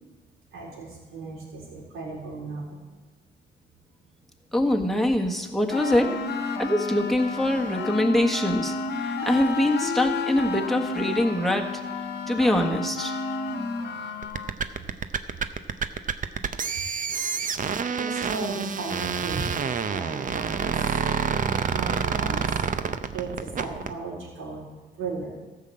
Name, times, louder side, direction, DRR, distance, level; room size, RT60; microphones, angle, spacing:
voice 1, 0.5-2.7 18.0-20.7 21.7-22.4 23.1-24.6 25.0-25.3, right 3 dB, 90° right, -4 dB, 4.1 m, -35 dB
voice 2, 4.5-6.1 6.6-11.7 12.3-13.1, left 1 dB, ahead, 1 dB, 1.5 m, -24 dB
sound 1, 5.7-14.5, left 3 dB, 55° left, 1.3 m, -31 dB
sound 2, 14.2-23.9, right 6 dB, 40° right, 0.7 m, -28 dB
14.5 x 5.8 x 7.6 m, 1.2 s
cardioid pair, 90°, 20 cm